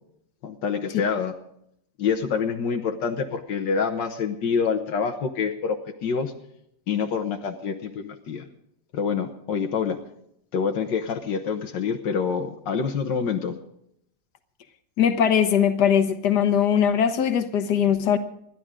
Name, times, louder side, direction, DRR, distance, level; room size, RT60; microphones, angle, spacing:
voice 1, 0.4-1.3 2.0-6.3 6.9-8.5 8.9-10.0 10.5-13.6, left 6 dB, 85° left, 1.8 m, -26 dB
voice 2, 15.0-18.2, left 8 dB, 70° left, 1.8 m, -20 dB
28.0 x 11.5 x 3.7 m
omnidirectional pair, 1.9 m